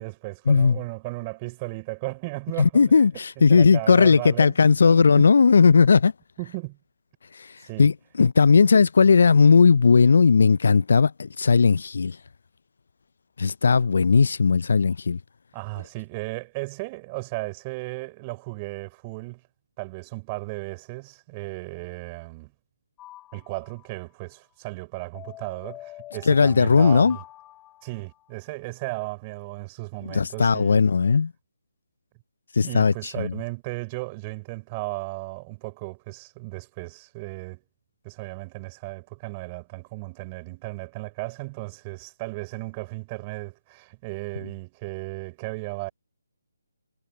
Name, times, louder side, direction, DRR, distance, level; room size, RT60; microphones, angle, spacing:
voice 1, 0.0-3.0 3.4-4.6 5.1-5.3 6.4-6.8 7.6-7.9 15.5-19.4 19.8-22.5 23.3-27.2 27.8-30.8 32.6-37.6 38.0-45.9, right 26 dB, 25° right, 5.1 m, -35 dB
voice 2, 2.6-6.1 7.4-7.5 7.8-7.9 8.2-12.2 13.4-15.2 26.3-27.2 30.1-31.3 32.6-32.9 33.2-33.3, left 5 dB, 60° left, 0.5 m, -17 dB
sound 1, 23.0-24.0 25.1-28.4, left 15 dB, 15° left, 2.8 m, -46 dB
figure-of-eight pair, 150°, 0 cm